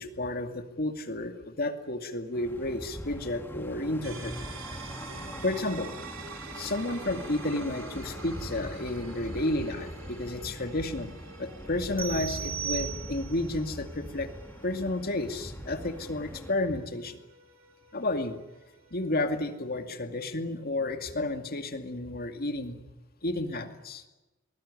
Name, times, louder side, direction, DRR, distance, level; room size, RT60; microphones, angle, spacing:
voice 1, 0.0-4.3 5.4-5.9 6.5-14.3 14.6-17.2 17.9-18.4 18.9-22.8 23.2-24.0, left 2 dB, 50° left, 7 dB, 2.4 m, -31 dB
sound 1, 2.3-16.5, equal, 10° left, 2.4 m, -42 dB
sound 2, 4.0-19.6, right 5 dB, 70° right, 3.1 m, -48 dB
sound 3, 12.0-13.5, right 9 dB, 10° right, 1.0 m, -36 dB
23.5 x 20.0 x 9.8 m, 1.1 s
head